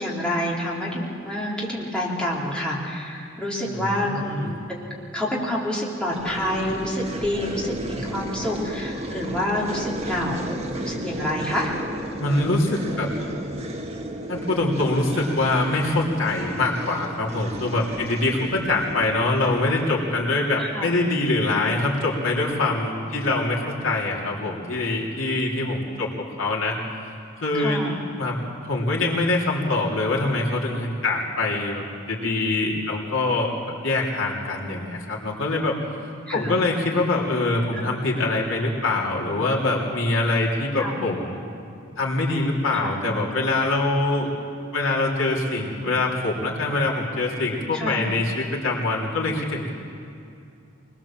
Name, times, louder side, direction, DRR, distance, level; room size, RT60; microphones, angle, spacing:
voice 1, 0.0-11.7 20.6-20.9 27.5-28.0 36.3-36.6 37.7-37.8 40.8-41.0 42.7-42.9 47.7-48.0, left 1 dB, 5° left, -5 dB, 3.4 m, -28 dB
voice 2, 3.7-4.5 12.2-13.1 14.3-26.8 27.4-27.9 28.2-28.4 28.6-33.5 33.8-35.8 36.3-41.4 42.0-44.3 44.7-49.7, left 2 dB, 75° left, -3 dB, 3.5 m, -24 dB
sound 1, 6.1-20.0, right 1 dB, 30° right, 2.0 m, -34 dB
23.0 x 21.5 x 7.5 m, 2.5 s
head